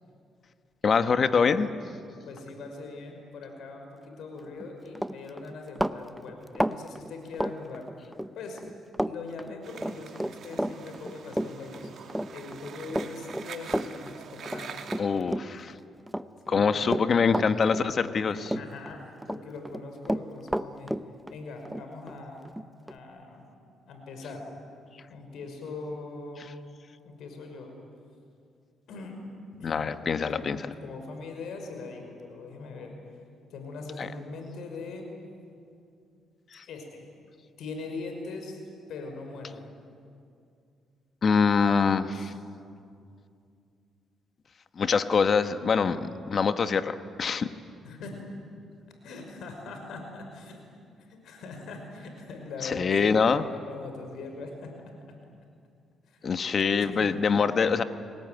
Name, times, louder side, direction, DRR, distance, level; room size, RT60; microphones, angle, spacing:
voice 1, 0.8-1.7 15.0-15.7 16.5-18.5 29.6-30.6 34.0-34.1 36.5-36.6 41.2-42.3 44.8-47.5 52.6-53.4 56.2-57.8, left 5 dB, 45° left, 10 dB, 1.3 m, -24 dB
voice 2, 2.2-7.9 8.3-8.6 9.0-14.8 16.5-17.4 18.3-20.9 21.3-22.5 22.8-23.5 23.9-24.5 25.1-26.5 27.0-27.7 28.9-29.2 29.6-29.9 30.3-30.5 30.8-32.9 33.5-35.1 36.7-37.0 37.6-38.6 38.9-39.7 41.8-42.3 47.8-48.2 49.0-50.6 51.1-54.7 56.1-56.4 56.8-57.1, left 3 dB, 75° left, 4 dB, 5.6 m, -41 dB
Run, 4.5-4.7 4.9-8.3 8.6-9.1 9.4-15.7 16.1-18.2 18.5-19.4 19.6-23.0, equal, 5° right, 0.8 m, -31 dB
sound 1, 9.6-15.0, right 6 dB, 60° right, 2.2 m, -44 dB
30.0 x 19.5 x 9.4 m, 2.4 s
cardioid pair, 90°, 0 cm